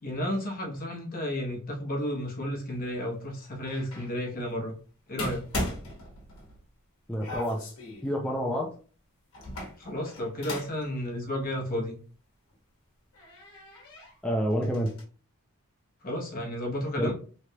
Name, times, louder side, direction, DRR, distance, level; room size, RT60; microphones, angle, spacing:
voice 1, 0.0-4.7 5.1-5.4 9.8-12.0 16.0-17.1, left 1 dB, 40° left, 0 dB, 0.8 m, -32 dB
sound 1, 3.7-4.1 5.2-6.6 7.2-8.1 9.3-10.9 11.2-11.3 12.5-12.6 13.1-14.2 14.5-15.0, left 1 dB, 70° left, 1.1 m, -38 dB
voice 2, 7.1-7.6 8.0-8.7 14.2-14.9 17.0-17.1, equal, 5° left, -1 dB, 0.4 m, -28 dB
3.2 x 2.3 x 2.8 m, 0.40 s
head